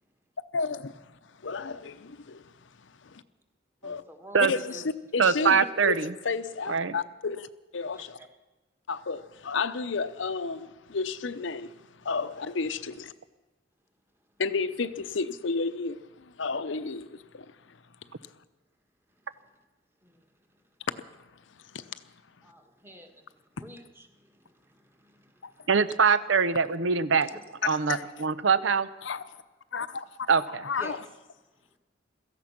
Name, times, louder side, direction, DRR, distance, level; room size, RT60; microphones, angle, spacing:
voice 1, 0.5-1.1 1.4-3.2 3.8-4.0 4.5-4.8 5.1-6.0 6.2-7.5 7.7-8.2 8.9-13.1 14.4-17.5 21.0-21.1 21.7-22.0 25.4-25.5 27.6-28.0 29.0-29.2 29.7-30.3 30.6-31.0, left 4 dB, 75° left, 0.7 m, -32 dB
voice 2, 3.8-4.8 5.4-5.6 7.9-8.3 19.1-19.6 20.0-20.6 22.4-25.7 27.2-27.5 30.8-31.0 31.6-31.8, equal, 10° right, 1.6 m, -50 dB
voice 3, 5.2-6.1 6.7-6.9 25.7-27.3 27.6-28.9 30.3-30.6, right 5 dB, 80° right, 0.7 m, -23 dB
17.0 x 14.0 x 5.9 m
head